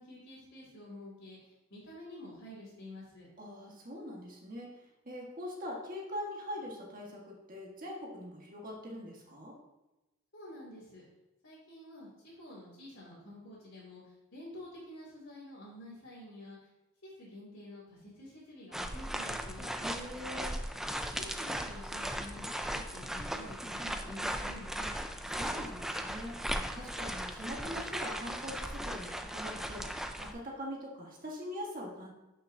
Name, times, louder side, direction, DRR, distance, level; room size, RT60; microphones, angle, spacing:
voice 1, 0.0-3.3 10.3-11.0 11.4-16.7 17.0-19.7 21.1-24.7, left 1 dB, 60° left, -10 dB, 2.8 m, -49 dB
voice 2, 3.4-9.5 19.8-20.6 24.8-24.9 25.3-32.1, equal, 40° right, -2 dB, 1.7 m, -43 dB
sound 1, 18.7-30.3, equal, ahead, 0.4 m, -37 dB
12.0 x 6.0 x 2.8 m, 1.0 s
head